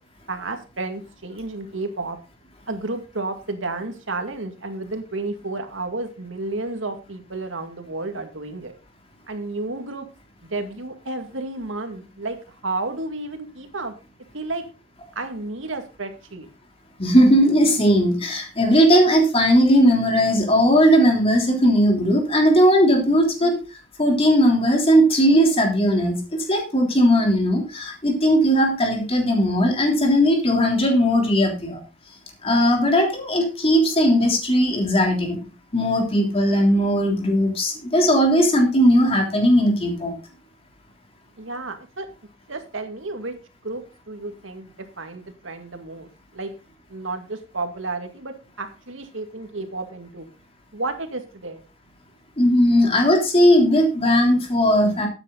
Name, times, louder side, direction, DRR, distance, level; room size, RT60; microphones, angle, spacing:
voice 1, 0.3-2.2 2.7-8.8 9.3-10.1 10.5-12.4 12.6-13.9 14.3-14.6 15.2-16.5 41.4-42.1 42.5-43.4 43.6-46.5 46.9-50.3 50.7-51.6, right 2 dB, 80° right, 6 dB, 2.1 m, -31 dB
voice 2, 17.0-23.5 24.0-31.8 32.4-35.4 35.7-40.1 52.4-55.1, equal, 30° left, 2 dB, 3.3 m, -18 dB
12.5 x 9.1 x 3.9 m, 0.31 s
head